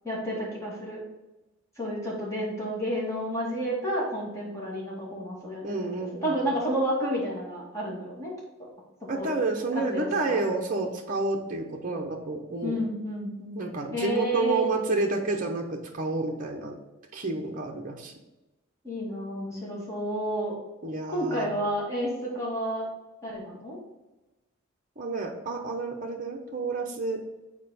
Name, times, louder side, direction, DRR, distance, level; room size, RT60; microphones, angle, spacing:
voice 1, 0.0-1.0 1.8-8.3 9.1-9.3 9.7-10.4 12.6-13.6 13.9-14.7 18.8-20.6 21.1-22.9 23.2-23.8, right 1 dB, 15° left, -5 dB, 2.5 m, -31 dB
voice 2, 5.6-6.4 9.1-12.8 13.5-16.8 17.1-18.1 20.8-21.5 25.0-27.2, right 2 dB, 35° right, 1 dB, 0.8 m, -30 dB
7.4 x 4.6 x 4.2 m, 1.1 s
head